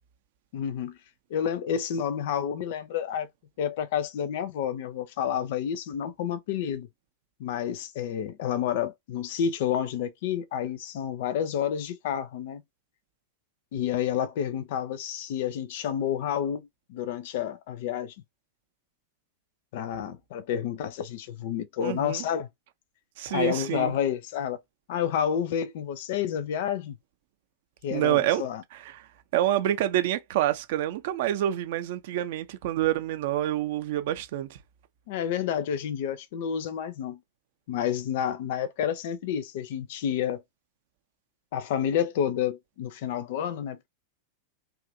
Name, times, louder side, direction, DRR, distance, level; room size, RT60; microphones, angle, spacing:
voice 1, 0.5-1.0 1.3-3.3 3.6-6.9 7.4-12.6 13.7-18.1 19.7-22.5 23.3-24.6 24.9-27.0 27.8-28.6 35.1-37.2 37.7-40.4 41.5-43.9, left 9 dB, 50° left, 0.4 m, -29 dB
voice 2, 21.8-22.2 23.2-24.0 27.9-28.4 28.7-29.0 29.3-34.6, right 13 dB, 50° right, 0.4 m, -27 dB
2.7 x 2.4 x 2.6 m
figure-of-eight pair, 90°, 0 cm